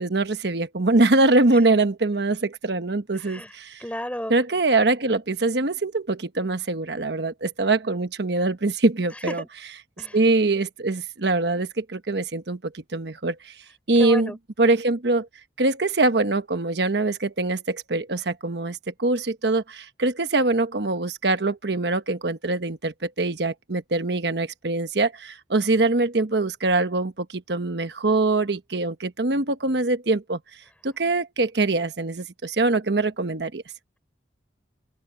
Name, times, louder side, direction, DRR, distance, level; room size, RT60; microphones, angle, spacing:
voice 1, 0.0-3.8 4.3-9.4 10.1-13.5 13.9-15.3 15.6-30.4 30.8-33.6, right 2 dB, 75° right, 1.1 m, -23 dB
voice 2, 3.2-4.3 9.3-9.5 10.0-10.2 14.0-14.4, equal, 10° left, 4.6 m, -33 dB
open air
head